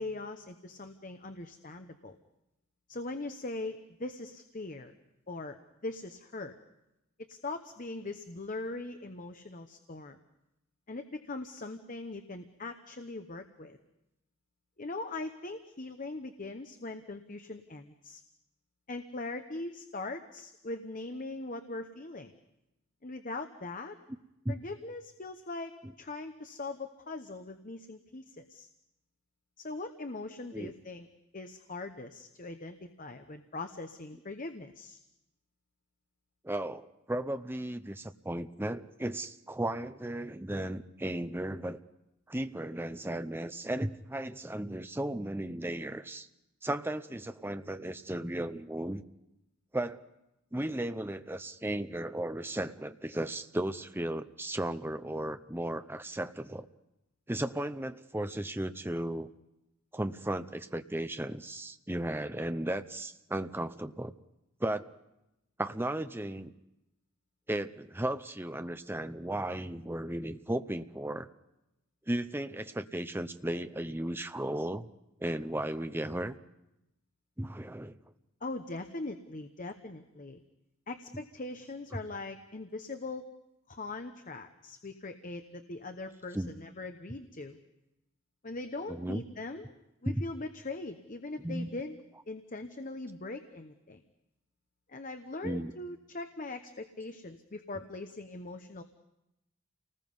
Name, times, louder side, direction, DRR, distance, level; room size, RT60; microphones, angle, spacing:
voice 1, 0.0-2.2 2.9-5.0 5.3-5.6 5.8-6.6 7.3-10.2 10.9-13.8 14.8-18.2 18.9-22.3 23.0-24.0 24.5-28.7 29.6-31.1 31.3-35.0 78.4-80.4 80.9-83.2 83.7-87.6 88.4-89.7 90.0-92.0 92.3-94.0 94.9-98.8, left 2 dB, 40° left, 7 dB, 1.0 m, -41 dB
voice 2, 36.4-41.8 42.3-46.3 46.6-49.0 49.7-50.0 50.5-56.7 57.3-59.3 59.9-64.1 64.6-64.9 65.6-66.5 67.5-71.3 72.1-74.9 75.2-76.4 77.4-78.0 81.1-81.2 81.9-82.0 86.3-86.5 88.9-89.2 90.1-90.2 91.4-91.7 95.4-95.7, right 1 dB, 10° right, 10 dB, 0.7 m, -35 dB
29.0 x 19.5 x 5.5 m, 0.90 s
head